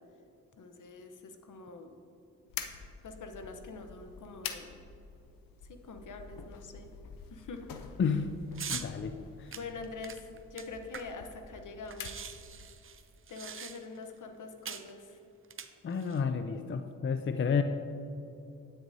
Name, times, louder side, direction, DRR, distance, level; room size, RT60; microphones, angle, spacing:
voice 1, 0.6-2.0 3.0-4.8 5.7-6.9 7.3-7.6 9.5-10.2 10.5-12.3 13.3-15.1, left 3 dB, 65° left, 6 dB, 0.9 m, -45 dB
sound 1, 2.5-12.8, left 7 dB, 85° left, 0.6 m, -47 dB
voice 2, 8.0-8.4 8.7-9.5 15.8-17.6, left 6 dB, 35° left, 8 dB, 0.5 m, -31 dB
Pill Bottles, 8.6-8.9 9.5-11.3 11.6-11.7 11.9-14.0 14.7-14.9 15.4-16.2, right 7 dB, 40° right, 0.6 m, -42 dB
9.4 x 8.7 x 2.7 m, 2.7 s
supercardioid pair, 50°, 33 cm